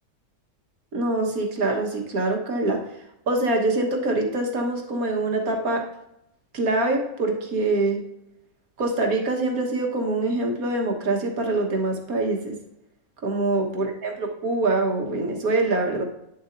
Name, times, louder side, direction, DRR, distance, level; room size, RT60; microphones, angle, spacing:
voice 1, 0.9-2.8 3.3-5.8 6.5-8.0 8.8-12.6 13.2-16.0, right 2 dB, 70° right, 2 dB, 1.8 m, -24 dB
10.0 x 7.4 x 2.6 m, 0.83 s
omnidirectional pair, 1.6 m